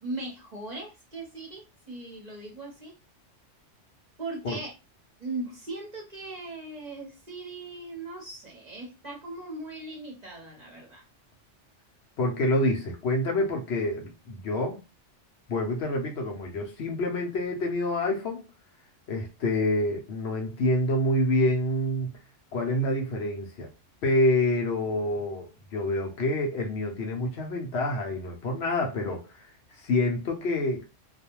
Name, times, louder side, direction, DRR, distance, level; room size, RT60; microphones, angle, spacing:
voice 1, 0.0-3.0 4.2-4.7 5.2-11.0, right 2 dB, 40° right, 0.8 m, -39 dB
voice 2, 12.2-14.8 15.5-18.4 19.1-22.1 22.5-23.7 24.0-30.9, left 1 dB, 65° left, 0.8 m, -27 dB
2.4 x 2.1 x 2.9 m
omnidirectional pair, 1.3 m